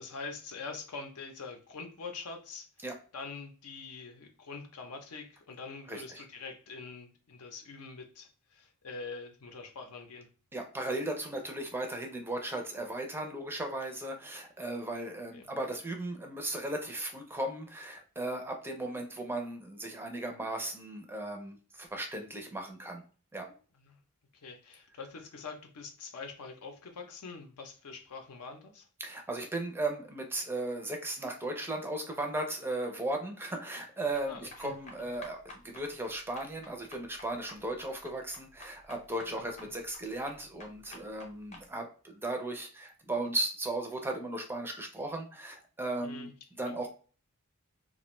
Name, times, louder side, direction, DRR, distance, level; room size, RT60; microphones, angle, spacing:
voice 1, 0.0-2.7 3.1-10.3 15.3-15.6 23.7-24.0 24.3-28.9 34.3-34.7 39.3-39.7 46.0-46.3 46.6-46.8, left 4 dB, 85° left, 4 dB, 0.6 m, -44 dB
voice 2, 5.9-6.2 10.5-23.0 23.3-23.5 29.0-46.3 46.6-46.9, right 2 dB, 10° right, 3 dB, 0.4 m, -36 dB
sound 1, 34.2-41.7, left 2 dB, 30° left, 0.6 m, -52 dB
2.4 x 2.2 x 3.0 m, 0.38 s
head